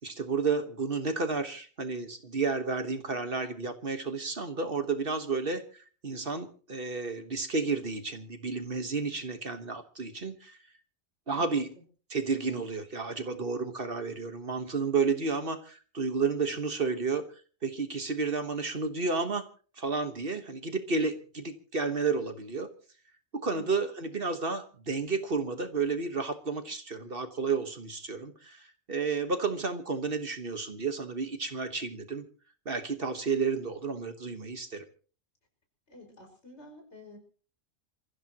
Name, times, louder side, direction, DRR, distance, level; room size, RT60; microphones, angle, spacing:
voice 1, 0.0-10.6 11.3-11.7 12.1-17.3 17.6-19.5 19.8-22.7 23.3-32.2 32.6-34.8, right 4 dB, 50° right, 8 dB, 1.5 m, -31 dB
voice 2, 11.3-11.7 23.5-23.7 35.9-37.2, left 1 dB, 60° left, 2 dB, 5.6 m, -50 dB
27.5 x 15.5 x 2.9 m, 0.40 s
omnidirectional pair, 1.3 m